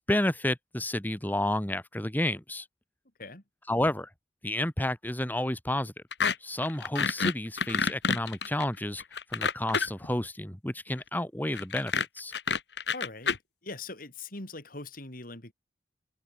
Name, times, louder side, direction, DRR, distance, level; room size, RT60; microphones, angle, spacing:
voice 1, 0.0-2.7 3.7-4.1 4.4-5.9 6.4-9.0 9.3-12.3, left 1 dB, 10° left, 1.8 m, -30 dB
sound 1, 6.1-6.4 6.6-10.1 11.5-13.4, left 5 dB, 70° left, 1.6 m, -28 dB
voice 2, 12.9-13.4 13.6-15.5, left 3 dB, 55° left, 5.7 m, -41 dB
open air
head